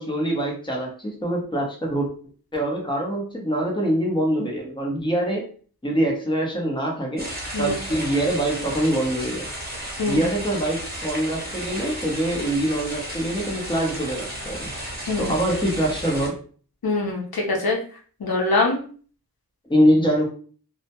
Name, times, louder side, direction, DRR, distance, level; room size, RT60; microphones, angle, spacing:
voice 1, 0.0-2.1 2.5-5.5 5.8-7.3 7.6-9.5 10.0-14.7 15.2-16.4 19.7-20.3, right 1 dB, 15° left, -1 dB, 0.7 m, -24 dB
sound 1, 7.2-16.3, right 1 dB, 25° right, 0.9 m, -33 dB
voice 2, 16.8-17.8 18.2-18.8, left 3 dB, 70° left, -1 dB, 0.7 m, -23 dB
2.2 x 2.0 x 2.8 m, 0.42 s
wide cardioid pair, 65°, 37 cm